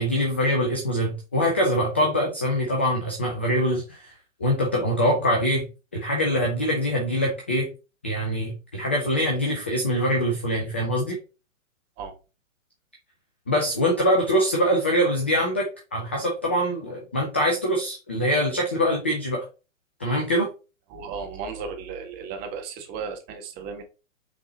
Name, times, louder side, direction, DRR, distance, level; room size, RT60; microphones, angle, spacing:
voice 1, 0.0-4.1 4.4-5.7 5.9-7.7 8.0-11.2 13.5-19.4 20.0-20.5, equal, 10° left, 0.4 m, -24 dB
voice 2, 20.9-23.8, right 5 dB, 25° right, 1.4 m, -35 dB
7.7 x 3.7 x 4.0 m
figure-of-eight pair, 120°, 40 cm